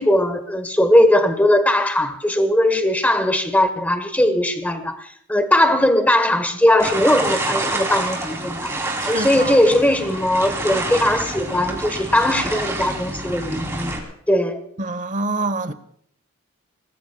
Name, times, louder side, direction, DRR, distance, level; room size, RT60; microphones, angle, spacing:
voice 1, 0.0-8.7 9.1-13.9 14.3-14.6, left 1 dB, 5° left, 1.2 m, -19 dB
sound 1, 6.8-14.0, right 2 dB, 15° right, 3.1 m, -27 dB
voice 2, 9.0-9.6 14.8-15.7, right 3 dB, 35° right, 0.9 m, -26 dB
29.5 x 19.5 x 2.3 m
head